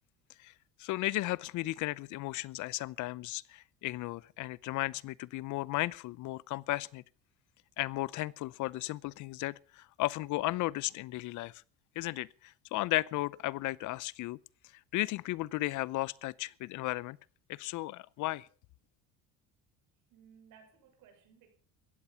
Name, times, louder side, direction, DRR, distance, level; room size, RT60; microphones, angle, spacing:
voice 1, 0.8-7.0 7.8-11.6 12.0-14.4 14.9-17.2 17.5-18.5, left 18 dB, 65° left, 0.7 m, -35 dB
voice 2, 20.1-21.5, right 7 dB, 70° right, 6.7 m, -59 dB
16.0 x 13.5 x 5.7 m
supercardioid pair, 100°, 33 cm